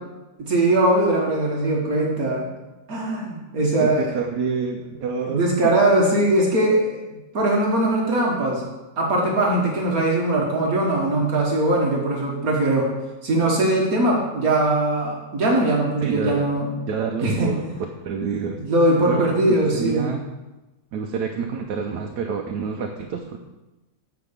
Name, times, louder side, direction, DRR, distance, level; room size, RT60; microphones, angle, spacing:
voice 1, 0.4-2.5 2.9-4.1 5.3-7.0 7.3-8.7 9.0-12.9 13.2-16.7 17.2-17.5 18.6-20.1, right 1 dB, 60° right, -2 dB, 1.8 m, -21 dB
voice 2, 3.8-5.4 16.0-16.5 16.8-18.6 19.1-19.4 19.7-20.2 20.9-23.4, right 5 dB, 85° right, 3 dB, 1.3 m, -28 dB
7.8 x 4.8 x 6.7 m, 1.1 s
omnidirectional pair, 1.7 m